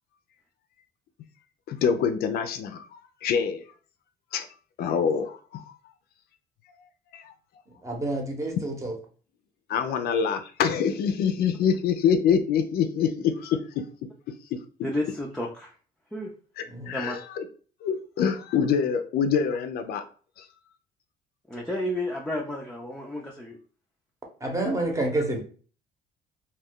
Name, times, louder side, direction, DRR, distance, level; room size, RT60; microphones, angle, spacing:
voice 1, 1.7-3.6 4.3-4.5 4.8-5.7 7.1-7.3 9.7-13.9 14.5-14.6 16.6-17.4 17.8-20.0 20.4-20.5, left 7 dB, 70° left, 0.4 m, -25 dB
voice 2, 7.8-8.9 16.7-16.9 24.4-25.4, right 2 dB, 20° right, 0.8 m, -28 dB
voice 3, 14.8-15.7 16.1-16.3 16.9-17.2 21.5-23.6, left 1 dB, 5° left, 0.4 m, -31 dB
2.3 x 2.3 x 3.5 m
cardioid pair, 110°, 17 cm